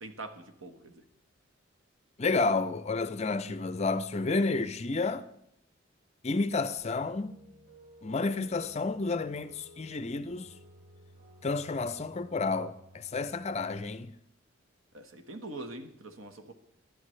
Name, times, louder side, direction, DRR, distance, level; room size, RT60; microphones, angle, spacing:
voice 1, 0.0-1.0 14.9-16.5, right 2 dB, 90° right, 1.4 m, -43 dB
voice 2, 2.2-5.2 6.2-7.3 8.0-10.5 11.4-14.1, left 3 dB, 35° left, 0.5 m, -30 dB
sound 1, 6.8-13.8, equal, 65° right, 5.7 m, -56 dB
22.0 x 11.5 x 3.2 m
head